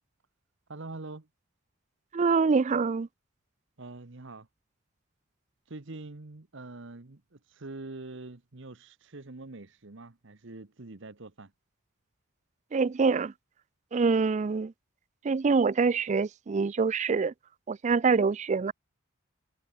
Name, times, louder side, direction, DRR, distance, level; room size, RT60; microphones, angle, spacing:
voice 1, 0.7-1.3 3.8-4.5 5.7-11.5, right 2 dB, 60° right, 1.1 m, -44 dB
voice 2, 2.1-3.1 12.7-13.3 13.9-14.7 15.2-17.3 17.7-18.7, right 4 dB, 35° right, 0.4 m, -25 dB
head